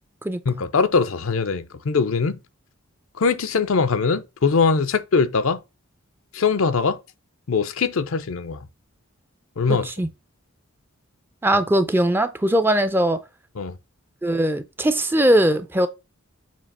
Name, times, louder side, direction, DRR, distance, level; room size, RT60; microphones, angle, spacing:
voice 1, 0.5-2.4 3.2-5.6 6.3-7.0 7.5-8.7 9.6-9.9 13.6-13.8, left 5 dB, 70° left, 0.5 m, -21 dB
voice 2, 9.7-10.1 11.4-13.2 14.2-15.9, right 1 dB, 10° right, 0.4 m, -20 dB
7.4 x 2.8 x 5.4 m
head